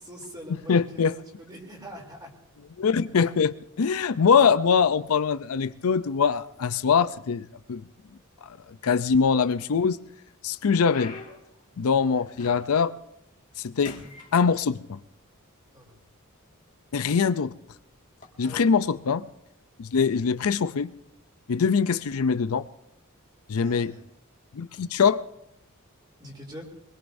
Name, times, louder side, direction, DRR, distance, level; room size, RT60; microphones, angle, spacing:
voice 1, 0.0-2.3 15.7-16.0 18.4-18.7 23.5-24.1 26.2-26.7, equal, 20° right, 0 dB, 3.1 m, -43 dB
voice 2, 0.7-1.1 2.8-7.8 8.8-10.0 10.4-11.1 11.8-12.9 13.6-14.0 14.3-15.0 16.9-17.5 18.4-19.3 19.8-20.9 21.5-22.6 23.5-23.9 24.5-25.2, left 6 dB, 75° left, 14 dB, 0.5 m, -23 dB
sound 1, 9.4-9.7 10.2-12.9 13.3-13.6 13.8-15.1 15.9-16.0 16.7-16.9 18.1-18.3, left 3 dB, 35° left, 2.0 m, -45 dB
24.0 x 21.0 x 2.7 m, 0.79 s
head